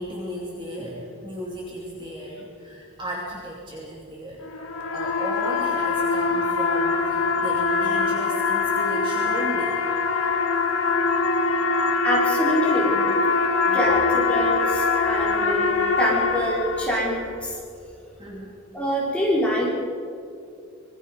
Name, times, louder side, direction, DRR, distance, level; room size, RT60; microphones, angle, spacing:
voice 1, 0.0-4.5 4.9-9.8 13.6-14.0 18.2-18.6, equal, 20° right, -3 dB, 2.7 m, -35 dB
sound 1, 4.4-17.2, left 4 dB, 70° left, 1.8 m, -23 dB
voice 2, 12.0-13.0 13.7-17.5 18.7-19.7, equal, 5° left, -6 dB, 5.0 m, -25 dB
25.5 x 22.5 x 5.5 m, 2.5 s
head